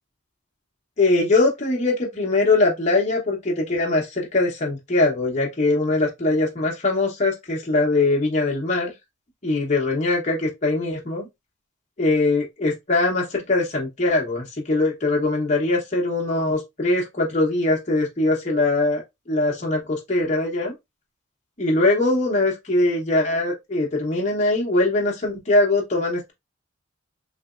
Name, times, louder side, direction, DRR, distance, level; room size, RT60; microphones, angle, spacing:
voice 1, 1.0-8.9 9.4-11.3 12.0-20.7 21.6-26.3, left 2 dB, 35° left, 0.8 m, -22 dB
3.3 x 2.9 x 2.3 m
head